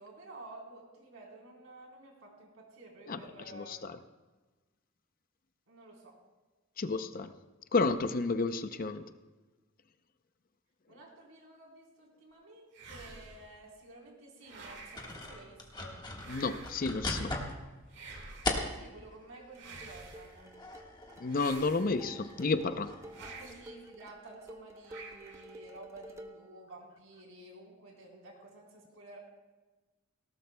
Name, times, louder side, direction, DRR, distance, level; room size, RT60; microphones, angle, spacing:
voice 1, 0.0-3.8 5.7-6.2 8.7-8.9 10.9-16.0 18.7-20.6 23.2-29.2, right 2 dB, 75° right, -1 dB, 3.9 m, -52 dB
voice 2, 3.5-3.9 6.8-7.3 7.7-9.0 16.3-17.3 21.2-22.9, left 3 dB, 40° left, 10 dB, 0.6 m, -31 dB
sound 1, 12.7-13.5 14.4-15.2 16.2-17.0 17.9-18.7 19.5-20.4 21.3-22.2 23.1-23.8 24.9-25.6, right 3 dB, 55° right, 1.8 m, -49 dB
sound 2, 15.0-19.1 19.6-23.4, left 2 dB, 20° left, 1.5 m, -40 dB
sound 3, 19.5-26.5, right 1 dB, 15° right, 0.8 m, -52 dB
18.5 x 17.5 x 2.2 m, 1.2 s
head